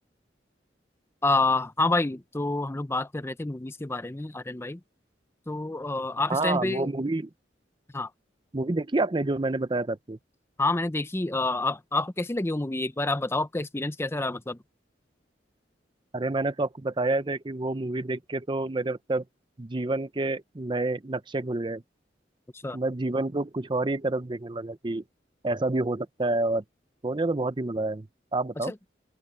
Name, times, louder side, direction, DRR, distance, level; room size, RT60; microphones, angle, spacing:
voice 1, 1.2-4.8 5.5-6.9 7.9-8.1 10.6-14.6 22.6-22.8 28.7-28.8, left 2 dB, 15° left, 0.6 m, -28 dB
voice 2, 6.3-7.3 8.5-10.2 16.1-19.2 19.6-21.8 22.7-25.0 25.4-26.6 27.0-28.1 28.3-28.7, right 2 dB, 25° right, 0.7 m, -28 dB
open air
head